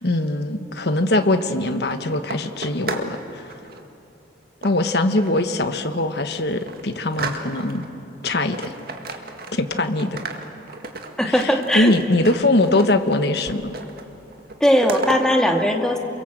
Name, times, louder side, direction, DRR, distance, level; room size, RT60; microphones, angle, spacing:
voice 1, 0.0-3.5 4.6-7.9 8.2-8.7 9.5-10.2 11.2-13.7, left 2 dB, 60° left, 8 dB, 1.4 m, -22 dB
sound 1, 1.2-3.2 3.4-3.8 4.6-5.4 5.9-6.0 6.3-7.9 8.2-9.7 10.0-13.2 13.5-14.1 14.3-15.2, right 3 dB, 55° right, 2.0 m, -34 dB
voice 2, 11.2-11.9 14.6-16.0, equal, 5° left, 2 dB, 1.9 m, -18 dB
29.0 x 22.5 x 8.0 m, 2.8 s
head